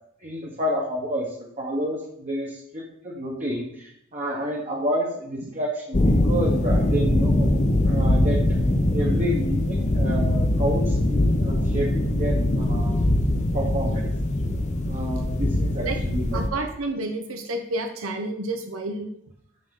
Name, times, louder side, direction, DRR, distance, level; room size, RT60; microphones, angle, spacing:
voice 1, 0.2-7.5 7.9-13.1 13.5-14.1 14.9-16.4, equal, 35° right, -2 dB, 1.0 m, -30 dB
sound 1, 5.9-16.5, left 1 dB, 35° left, 0.6 m, -22 dB
voice 2, 16.3-19.1, right 2 dB, 90° right, 5 dB, 0.8 m, -30 dB
9.5 x 4.0 x 3.7 m, 0.74 s
head